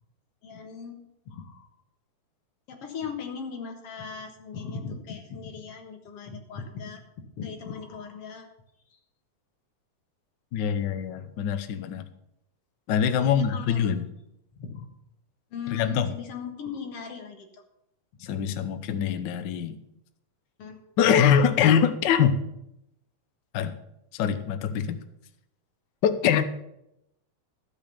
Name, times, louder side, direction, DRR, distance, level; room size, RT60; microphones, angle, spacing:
voice 1, 0.4-1.0 1.3-1.7 2.7-8.5 8.9-9.0 13.2-14.0 14.6-14.9 15.5-17.6 18.1-18.3 20.6-21.3, left 6 dB, 60° left, 4 dB, 2.4 m, -38 dB
voice 2, 10.5-12.1 12.9-14.0 15.7-16.1 18.2-19.8 21.0-22.4 23.5-23.7 24.1-25.0 26.0-26.4, left 8 dB, 85° left, 9 dB, 0.9 m, -23 dB
13.0 x 7.2 x 6.7 m, 0.82 s
omnidirectional pair, 3.3 m